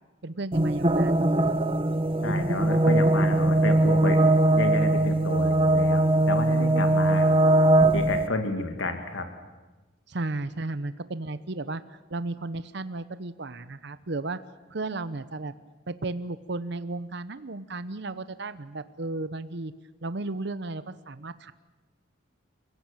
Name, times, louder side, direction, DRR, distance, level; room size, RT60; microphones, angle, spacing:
voice 1, 0.2-1.3 10.1-11.8 12.1-14.4 14.7-15.5 15.9-19.7 20.0-21.5, right 2 dB, 60° right, 13 dB, 0.9 m, -34 dB
sound 1, 0.5-8.3, right 1 dB, 30° right, 1.1 m, -21 dB
voice 2, 2.2-7.3 7.9-9.2, left 2 dB, 75° left, 6 dB, 2.4 m, -31 dB
29.5 x 16.0 x 9.1 m, 1.2 s
head